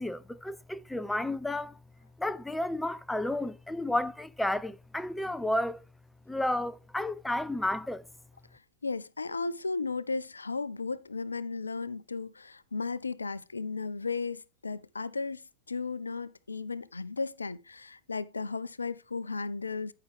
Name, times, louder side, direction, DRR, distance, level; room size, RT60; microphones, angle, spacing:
voice 1, 0.0-1.8 2.2-5.8 6.3-8.0, left 1 dB, 5° left, 0.5 m, -32 dB
voice 2, 8.5-15.4 15.7-19.9, left 4 dB, 75° left, 0.4 m, -35 dB
14.0 x 5.7 x 3.4 m
figure-of-eight pair, 90°, 0 cm